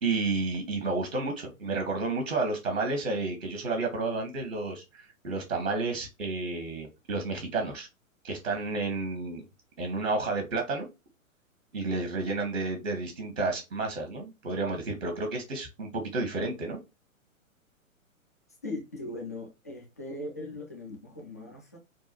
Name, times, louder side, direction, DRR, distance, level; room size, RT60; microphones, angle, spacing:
voice 1, 0.0-7.9 8.2-9.4 9.8-10.9 11.7-16.8, right 3 dB, 65° right, 1.6 m, -31 dB
voice 2, 18.6-21.8, left 2 dB, 15° left, 0.4 m, -39 dB
6.1 x 2.3 x 2.9 m
figure-of-eight pair, 120°, 42 cm